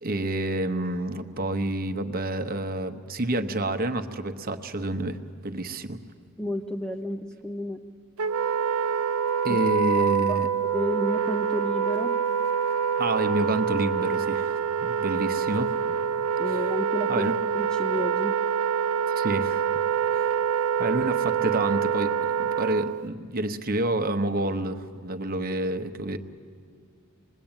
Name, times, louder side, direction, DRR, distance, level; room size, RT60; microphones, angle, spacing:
voice 1, 0.0-5.2 5.4-6.0 9.4-10.5 13.0-15.7 16.5-16.6 17.1-17.3 19.1-19.7 20.1-20.4 20.8-22.1 22.4-26.2, right 1 dB, 40° right, 8 dB, 1.0 m, -28 dB
voice 2, 6.4-7.8 9.5-9.6 9.9-10.4 10.7-12.2 16.4-17.3 17.5-18.3, left 1 dB, 5° left, 6 dB, 0.6 m, -31 dB
Wind instrument woodwind instrument, 8.2-23.1, right 7 dB, 80° right, 0.6 m, -26 dB
26.5 x 21.0 x 8.9 m, 2.3 s
head